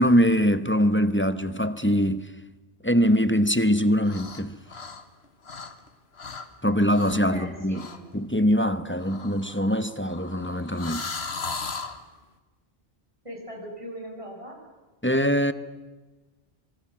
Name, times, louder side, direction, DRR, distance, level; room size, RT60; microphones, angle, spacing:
voice 1, 0.0-2.3 2.8-4.5 6.6-7.8 8.1-11.1 15.0-15.5, equal, 10° left, 1.1 m, -22 dB
sound 1, 4.0-4.4 4.7-5.9 6.2-6.5 6.9-7.3 7.7-8.0 9.0-12.0, left 4 dB, 80° left, 1.9 m, -37 dB
voice 2, 7.3-8.1 13.2-14.6, equal, 30° right, 7.0 m, -40 dB
26.0 x 24.0 x 7.5 m
omnidirectional pair, 1.1 m